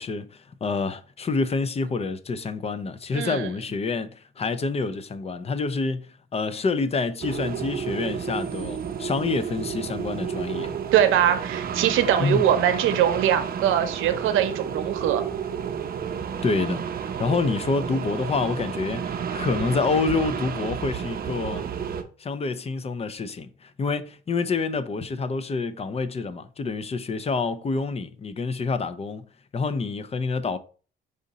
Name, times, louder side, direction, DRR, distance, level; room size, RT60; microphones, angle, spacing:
voice 1, 0.0-10.8 12.2-12.5 16.4-21.7 22.2-29.3 29.5-30.6, left 4 dB, 30° left, 0.5 m, -27 dB
voice 2, 3.1-3.5 10.9-15.2, right 10 dB, 90° right, 0.7 m, -22 dB
sound 1, 7.2-22.0, right 7 dB, 50° right, 0.7 m, -31 dB
4.9 x 2.7 x 4.0 m
cardioid pair, 90°, 20 cm